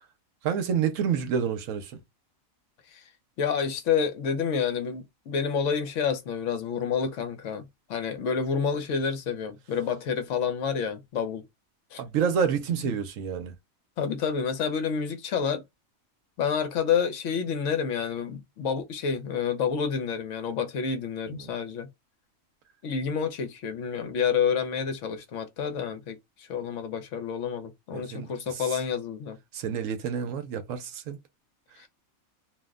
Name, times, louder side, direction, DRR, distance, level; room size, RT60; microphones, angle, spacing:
voice 1, 0.4-2.0 12.0-13.5 21.3-21.5 27.9-28.8 29.5-31.2, right 7 dB, 75° right, 1.0 m, -29 dB
voice 2, 3.4-11.4 11.9-12.0 14.0-15.6 16.4-21.9 22.8-29.4 31.8-31.9, left 6 dB, 65° left, 1.0 m, -29 dB
2.6 x 2.1 x 3.5 m
omnidirectional pair, 1.5 m